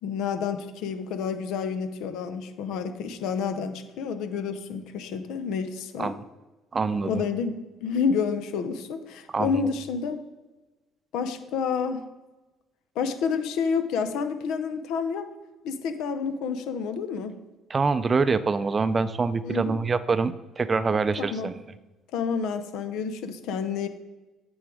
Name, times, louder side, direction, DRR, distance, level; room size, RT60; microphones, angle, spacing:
voice 1, 0.0-6.1 7.0-10.2 11.1-12.0 13.0-15.3 15.6-17.4 19.4-19.8 21.3-21.5 22.1-23.9, left 6 dB, 70° left, 9 dB, 0.6 m, -29 dB
voice 2, 6.7-7.1 9.3-9.7 17.7-21.6, right 4 dB, 35° right, 13 dB, 0.5 m, -25 dB
8.8 x 3.9 x 4.8 m, 1.1 s
hypercardioid pair, 60°, 0 cm